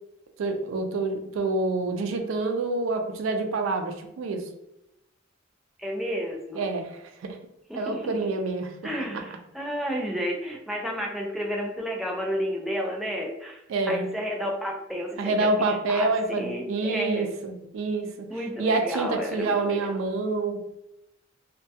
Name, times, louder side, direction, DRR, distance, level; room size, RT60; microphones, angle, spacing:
voice 1, 0.4-4.5 6.5-7.4 7.7-8.7 9.1-9.2 13.7-14.1 15.2-18.3 18.6-20.6, right 3 dB, 85° right, 6 dB, 0.4 m, -27 dB
voice 2, 5.8-6.7 7.7-8.3 8.8-17.4 18.3-20.0, equal, ahead, -1 dB, 0.3 m, -32 dB
2.2 x 2.2 x 2.6 m, 0.85 s
head